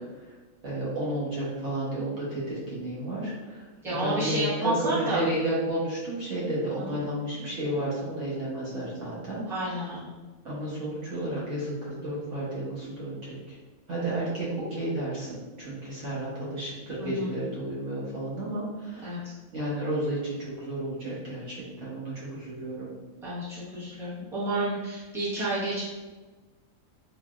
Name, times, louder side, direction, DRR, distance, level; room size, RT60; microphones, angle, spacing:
voice 1, 0.6-9.9 10.4-13.6 13.9-19.2 19.5-22.9, right 1 dB, 60° right, -8 dB, 1.4 m, -32 dB
voice 2, 3.8-5.2 6.8-7.0 9.5-10.1 17.0-17.3 19.0-19.2 23.2-25.9, right 1 dB, ahead, -11 dB, 1.1 m, -30 dB
3.7 x 3.3 x 2.4 m, 1.3 s
omnidirectional pair, 1.5 m